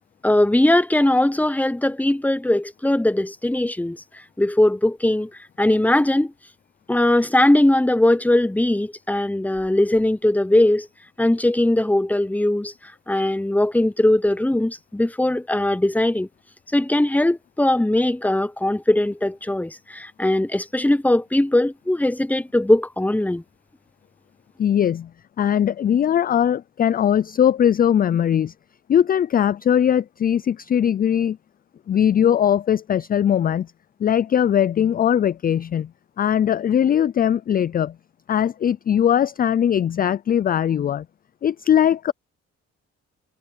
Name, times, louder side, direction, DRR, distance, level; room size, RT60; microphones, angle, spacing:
voice 1, 0.2-4.0 4.4-5.3 5.6-6.3 6.9-10.9 11.2-16.3 16.7-23.4, left 1 dB, 5° left, 1.0 m, -20 dB
voice 2, 24.6-25.1 25.4-28.5 28.9-31.4 31.9-33.7 34.0-35.9 36.2-38.0 38.3-41.1 41.4-42.1, left 9 dB, 30° left, 0.4 m, -20 dB
cardioid pair, 90°, 30 cm